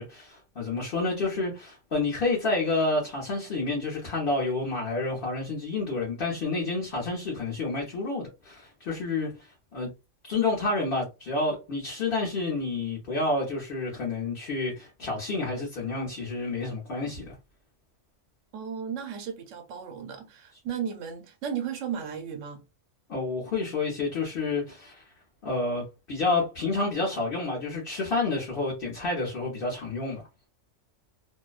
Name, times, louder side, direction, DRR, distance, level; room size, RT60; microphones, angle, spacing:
voice 1, 0.0-9.9 10.2-17.4 23.1-25.0 25.4-30.2, left 3 dB, 50° left, 0.9 m, -29 dB
voice 2, 18.5-22.6, right 8 dB, 80° right, 1.0 m, -35 dB
2.6 x 2.0 x 2.3 m
omnidirectional pair, 1.3 m